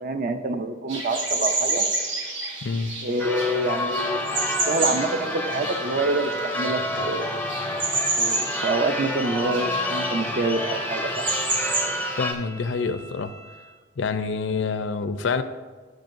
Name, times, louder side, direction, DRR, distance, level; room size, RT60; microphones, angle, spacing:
voice 1, 0.0-1.9 3.0-7.4 8.2-11.3, right 2 dB, 50° right, 0.5 m, -27 dB
sound 1, 0.9-12.4, right 2 dB, 80° right, 1.5 m, -30 dB
voice 2, 2.6-2.9 12.2-13.4 14.0-15.4, left 4 dB, 75° left, 0.5 m, -27 dB
Church bell / Car / Alarm, 3.2-12.3, left 1 dB, 10° left, 0.5 m, -29 dB
Bowed string instrument, 8.9-13.8, right 2 dB, 20° right, 0.9 m, -45 dB
10.5 x 6.5 x 2.6 m
head